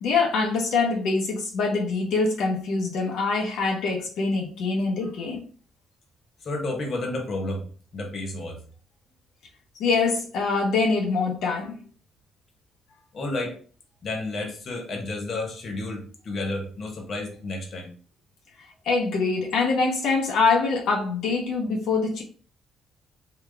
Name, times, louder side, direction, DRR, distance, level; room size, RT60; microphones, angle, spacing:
voice 1, 0.0-5.4 9.8-11.8 18.8-22.2, left 4 dB, 80° left, 0.7 m, -24 dB
voice 2, 6.4-7.7 7.9-8.6 13.1-13.6 14.0-17.9, left 2 dB, 45° left, 1.0 m, -31 dB
3.8 x 2.3 x 3.3 m
cardioid pair, 145°, 0 cm